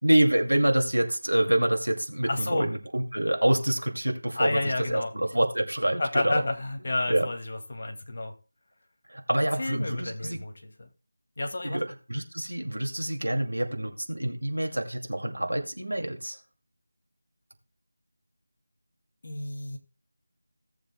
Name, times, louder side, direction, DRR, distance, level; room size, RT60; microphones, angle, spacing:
voice 1, 0.0-6.4 7.1-7.3 9.1-10.4 11.6-16.4, right 1 dB, 85° right, 4 dB, 2.3 m, -26 dB
voice 2, 2.3-2.7 4.3-5.1 6.0-8.3 9.6-10.9 11.4-11.8 19.2-19.8, left 2 dB, 45° left, 4 dB, 2.1 m, -30 dB
17.0 x 7.5 x 2.2 m, 0.33 s
figure-of-eight pair, 165°, 0 cm